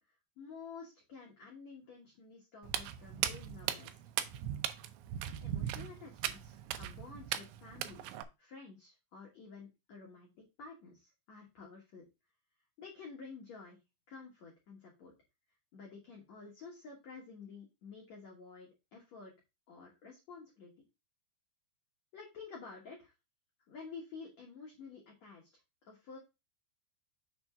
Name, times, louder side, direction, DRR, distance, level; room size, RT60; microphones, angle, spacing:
voice 1, 0.4-4.0 5.4-8.0 8.4-12.0 12.8-13.8 14.1-15.1 15.7-19.3 19.7-20.7 22.1-23.1 23.7-25.5 25.8-26.2, left 5 dB, 70° left, -2 dB, 1.6 m, -51 dB
Walk footsteps, 2.6-8.2, right 11 dB, 85° right, 2.4 m, -38 dB
7.0 x 3.5 x 5.6 m, 0.25 s
omnidirectional pair, 5.6 m